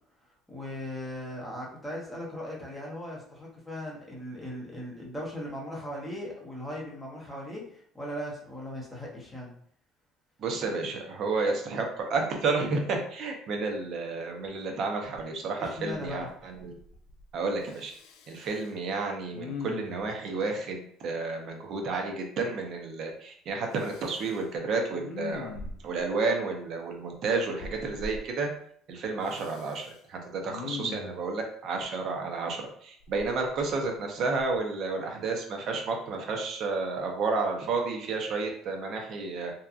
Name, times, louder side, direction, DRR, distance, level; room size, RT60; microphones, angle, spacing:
voice 1, 0.5-9.5 15.6-16.3, left 1 dB, 5° left, -4 dB, 0.8 m, -38 dB
voice 2, 10.4-16.8 17.3-17.9 18.3-25.6 25.8-28.5 28.9-39.5, right 3 dB, 50° right, 2 dB, 0.6 m, -31 dB
Respiratory sounds, 15.7-16.3 16.5-17.3 17.7-18.7 19.3-20.2 23.8-24.4 25.0-26.0 27.6-28.2 29.2-29.9 30.5-31.2 33.0-34.0 34.4-34.6, left 5 dB, 75° left, 0.3 m, -41 dB
2.8 x 2.2 x 2.4 m, 0.62 s
cardioid pair, 140°, 0 cm